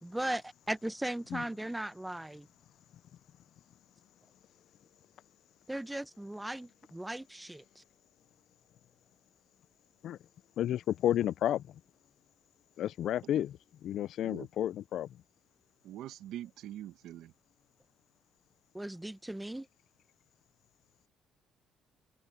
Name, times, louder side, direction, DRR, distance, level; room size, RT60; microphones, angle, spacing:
voice 1, 0.0-2.5 5.7-7.8 18.7-19.7, right 1 dB, 5° right, 1.0 m, -38 dB
voice 2, 10.6-11.8 12.8-15.1, left 11 dB, 65° left, 0.5 m, -32 dB
voice 3, 15.8-17.3, right 12 dB, 75° right, 1.4 m, -44 dB
open air
cardioid pair, 105°, 0 cm